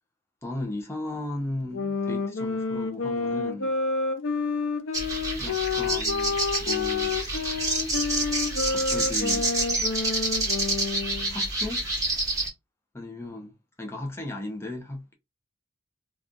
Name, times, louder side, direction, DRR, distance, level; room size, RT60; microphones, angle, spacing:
voice 1, 0.4-3.7 5.4-7.2 8.7-9.5 11.3-11.9 12.9-13.5 13.8-15.1, left 1 dB, 15° left, 0.5 m, -35 dB
sound 1, 1.7-11.4, left 4 dB, 85° left, 0.6 m, -29 dB
sound 2, 4.9-12.5, right 2 dB, 15° right, 1.1 m, -28 dB
2.5 x 2.3 x 3.7 m
head